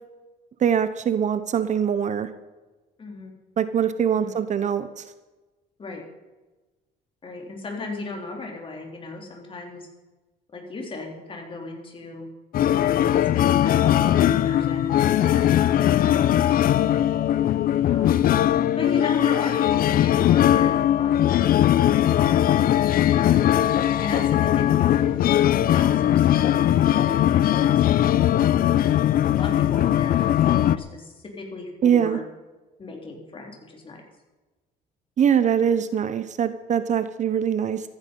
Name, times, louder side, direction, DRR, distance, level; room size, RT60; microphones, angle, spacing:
voice 1, 0.6-2.3 3.6-5.0 31.8-32.2 35.2-37.8, right 8 dB, 45° right, 12 dB, 1.0 m, -22 dB
voice 2, 3.0-3.4 4.1-4.4 5.8-6.0 7.2-9.9 10.5-12.3 12.8-16.8 17.9-18.2 18.8-21.5 21.9-23.4 24.0-27.8 28.3-28.7 29.3-32.2 32.8-34.0, left 3 dB, 30° left, 1 dB, 4.2 m, -37 dB
sound 1, 12.5-30.8, left 11 dB, 60° left, 0.7 m, -20 dB
15.0 x 14.5 x 5.5 m, 1.2 s
cardioid pair, 110°, 17 cm